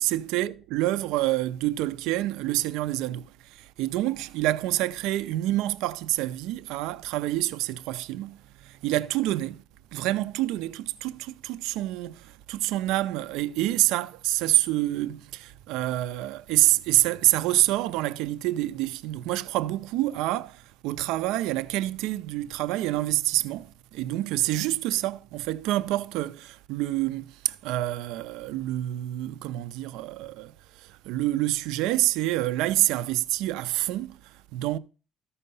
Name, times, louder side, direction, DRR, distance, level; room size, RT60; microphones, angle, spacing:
voice 1, 0.0-9.6 9.9-34.8, right 16 dB, 85° right, 0.4 m, -27 dB
13.5 x 5.6 x 5.4 m
cardioid pair, 155°, 0 cm